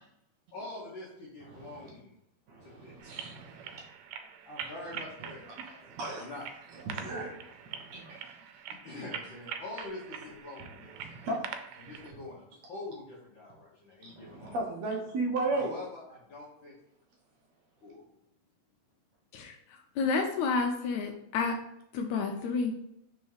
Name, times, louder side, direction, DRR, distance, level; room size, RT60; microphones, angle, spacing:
voice 1, 0.5-2.2 2.6-3.2 4.5-6.5 6.9-7.4 8.7-10.9 11.8-14.6 15.5-16.7 17.8-18.0, left 2 dB, 60° left, -6 dB, 1.3 m, -45 dB
voice 2, 2.5-3.8 5.6-6.3 6.9-7.3 7.7-8.4 11.0-11.4 14.0-15.7, right 2 dB, 70° right, 0 dB, 1.7 m, -35 dB
sound 1, 3.0-12.1, right 7 dB, 85° right, 2.2 m, -44 dB
voice 3, 20.0-21.6 21.9-22.7, left 4 dB, 80° left, 4 dB, 1.8 m, -30 dB
4.7 x 4.1 x 4.9 m, 0.78 s
omnidirectional pair, 3.6 m